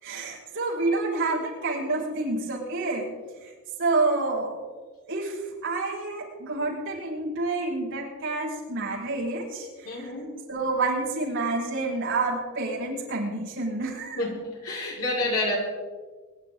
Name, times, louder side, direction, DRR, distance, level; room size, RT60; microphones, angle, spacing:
voice 1, 0.0-3.1 3.4-3.5 3.8-4.6 5.1-10.1 10.5-14.2, right 3 dB, 55° right, -6 dB, 6.0 m, -28 dB
voice 2, 9.8-10.3 14.1-15.6, left 2 dB, 75° left, -3 dB, 4.9 m, -29 dB
24.0 x 12.0 x 3.8 m, 1.4 s
head